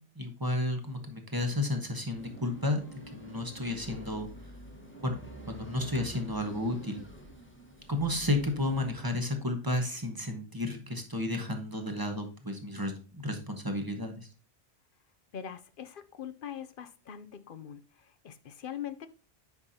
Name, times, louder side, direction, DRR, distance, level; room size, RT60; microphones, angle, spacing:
voice 1, 0.2-2.8 3.1-4.3 5.0-5.2 5.5-7.0 7.9-14.3, left 1 dB, 20° right, 4 dB, 1.2 m, -32 dB
sound 1, 2.2-9.1, right 1 dB, 10° left, 1.2 m, -48 dB
voice 2, 15.3-19.1, left 9 dB, 55° left, 12 dB, 0.8 m, -42 dB
8.0 x 5.7 x 2.8 m, 0.37 s
omnidirectional pair, 1.2 m